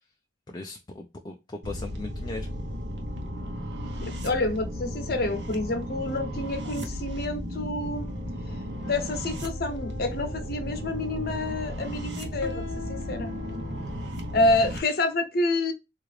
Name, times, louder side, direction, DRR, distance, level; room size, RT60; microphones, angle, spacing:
voice 1, 0.5-2.5 14.5-14.6, left 2 dB, 25° left, 0.4 m, -38 dB
sound 1, 1.6-14.8, equal, 75° right, 0.8 m, -35 dB
voice 2, 4.0-8.1 8.8-13.3 14.3-15.7, left 2 dB, 55° left, 0.7 m, -28 dB
sound 2, 8.8-13.9, left 4 dB, 90° left, 0.5 m, -44 dB
3.8 x 2.4 x 3.1 m
head